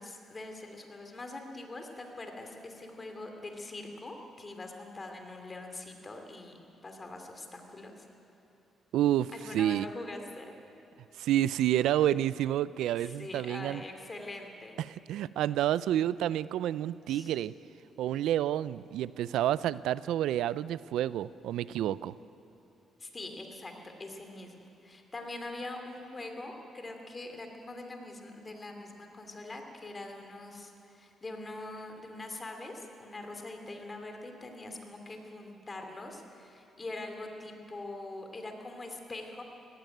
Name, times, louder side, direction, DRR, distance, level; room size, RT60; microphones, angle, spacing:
voice 1, 0.0-6.6 6.8-8.1 9.3-10.5 12.9-14.8 17.1-17.3 23.0-39.4, left 2 dB, 25° left, 4 dB, 3.0 m, -43 dB
voice 2, 8.9-9.9 11.2-13.8 14.8-17.5 18.0-22.1, right 12 dB, 85° right, 18 dB, 0.4 m, -29 dB
18.0 x 16.0 x 9.3 m, 2.8 s
cardioid pair, 90°, 0 cm